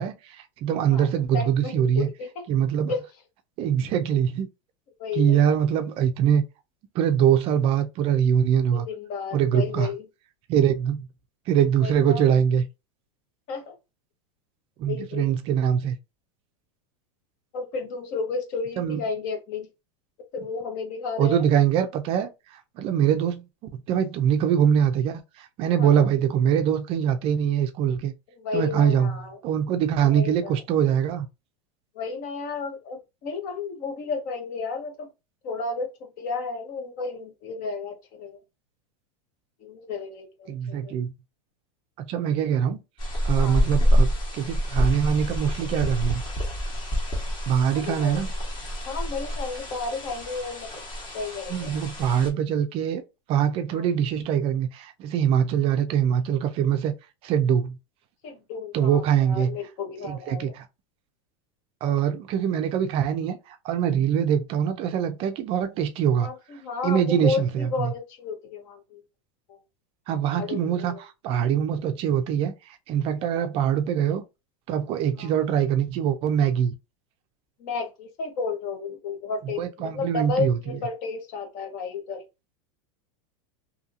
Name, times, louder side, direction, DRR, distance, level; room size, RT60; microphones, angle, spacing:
voice 1, 0.0-2.1 2.5-2.9 3.6-4.5 5.1-6.4 6.9-8.9 9.3-9.9 10.5-11.1 11.5-12.7 14.8-16.0 18.8-19.0 21.2-23.4 23.7-28.1 28.5-29.1 29.4-31.3 40.5-41.1 42.0-42.8 43.2-44.1 44.3-46.2 47.5-48.3 51.5-53.0 53.3-56.9 57.2-57.8 58.7-59.6 60.0-60.7 61.8-66.3 66.8-67.9 70.1-74.2 74.7-76.7 79.6-80.6, right 9 dB, 35° right, 0.4 m, -23 dB
voice 2, 1.3-2.4 2.9-3.1 5.0-5.5 8.7-10.0 11.8-12.2 13.5-13.7 14.9-15.3 17.5-19.7 20.3-21.5 25.8-26.1 28.3-29.4 30.0-30.6 31.9-35.1 35.4-38.4 39.6-40.9 43.4-43.7 47.7-48.2 48.9-50.9 51.1-51.7 53.7-53.9 58.2-60.6 66.2-69.0 69.5-69.6 70.3-71.0 73.3-73.5 75.2-75.3 77.6-82.2, left 4 dB, 45° left, 0.9 m, -32 dB
sound 1, 43.0-52.3, equal, 25° left, 1.2 m, -27 dB
2.7 x 2.6 x 2.5 m
supercardioid pair, 150°, 17 cm